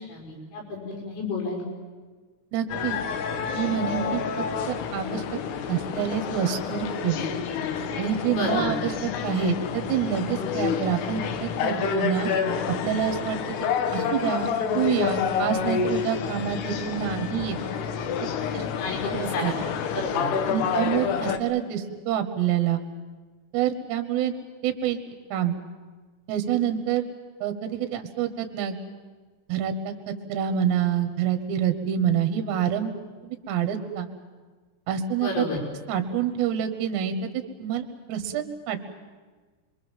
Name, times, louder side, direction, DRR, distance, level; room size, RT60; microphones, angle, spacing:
voice 1, 0.0-1.6 8.3-8.7 18.8-20.6 35.2-35.6, left 2 dB, 85° left, 0 dB, 8.5 m, -31 dB
voice 2, 2.5-3.0 3.5-4.2 4.7-5.2 5.7-7.2 8.0-12.3 12.8-13.4 13.9-17.6 18.5-18.7 19.1-19.5 20.5-22.8 23.5-24.4 24.6-25.0 25.3-25.5 26.3-27.1 27.4-28.8 29.5-33.0 33.2-34.1 34.9-35.4 35.9-37.3 37.6-38.8, right 9 dB, 70° right, 7 dB, 3.1 m, -27 dB
sound 1, 2.7-21.4, left 7 dB, 70° left, 2.8 m, -28 dB
27.0 x 23.0 x 7.4 m, 1.4 s
omnidirectional pair, 5.9 m